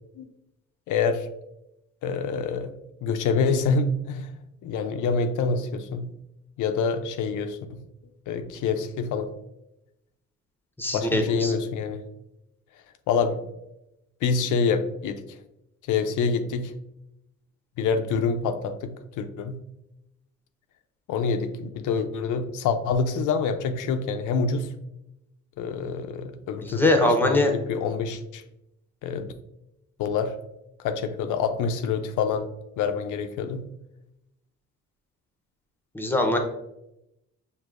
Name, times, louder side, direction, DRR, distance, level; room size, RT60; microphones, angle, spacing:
voice 1, 0.9-1.3 2.0-2.7 3.0-4.3 4.6-6.1 6.6-7.8 8.3-9.3 10.9-12.0 13.1-13.4 14.2-15.2 15.9-16.7 17.8-19.6 21.1-24.7 25.6-28.4 29.0-29.3 30.0-30.3 30.8-32.5 32.8-33.6, left 5 dB, 80° left, 8 dB, 0.5 m, -26 dB
voice 2, 10.8-11.5 26.6-27.5 35.9-36.4, left 1 dB, 5° left, 3 dB, 0.7 m, -22 dB
6.4 x 2.7 x 2.4 m, 0.88 s
cardioid pair, 90°, 30 cm